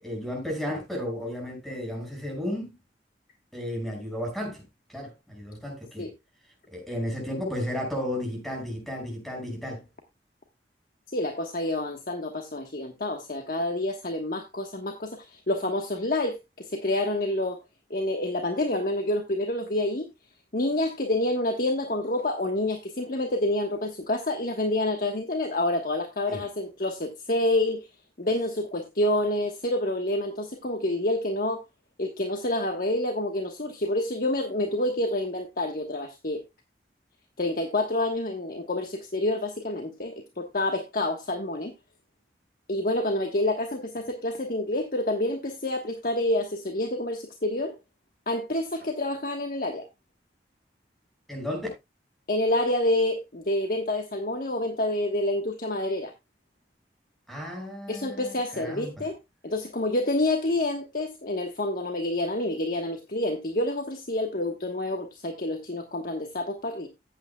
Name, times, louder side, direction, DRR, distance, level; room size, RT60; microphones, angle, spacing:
voice 1, 0.0-2.7 3.5-4.6 4.9-6.1 6.7-9.8 26.3-26.5 51.3-51.7 57.3-59.1, left 1 dB, ahead, 5.5 m, -33 dB
voice 2, 11.1-17.6 17.9-20.1 20.5-27.9 28.2-31.6 32.0-36.4 37.4-41.7 42.7-47.8 48.3-49.9 52.3-56.1 57.9-59.2 59.4-66.9, left 1 dB, 55° left, 1.2 m, -28 dB
14.5 x 8.7 x 2.2 m
head